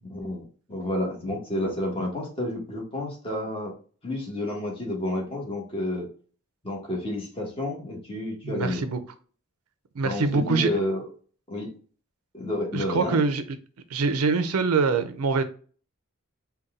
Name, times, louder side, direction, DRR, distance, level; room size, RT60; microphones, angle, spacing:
voice 1, 0.0-3.7 4.0-6.1 6.6-8.9 10.0-11.0 11.5-11.7 12.3-13.2, left 1 dB, 25° left, -1 dB, 1.2 m, -30 dB
voice 2, 8.4-9.0 9.9-10.7 12.7-13.6 13.9-15.4, right 4 dB, 90° right, 9 dB, 0.5 m, -24 dB
4.0 x 2.3 x 3.7 m, 0.41 s
head